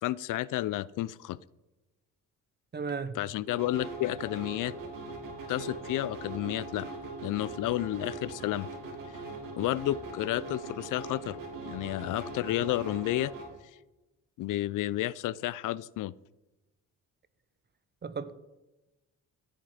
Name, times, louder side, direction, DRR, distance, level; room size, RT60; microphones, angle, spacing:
voice 1, 0.0-1.4 3.1-4.7 5.5-6.9 7.2-8.7 9.6-11.4 11.6-13.3 14.4-16.1, left 15 dB, 70° left, 0.5 m, -31 dB
voice 2, 2.7-3.2 18.0-18.3, right 5 dB, 30° right, 1.0 m, -34 dB
sound 1, 3.5-13.4, right 3 dB, 80° right, 3.8 m, -41 dB
16.5 x 9.1 x 5.0 m
cardioid pair, 85°, 32 cm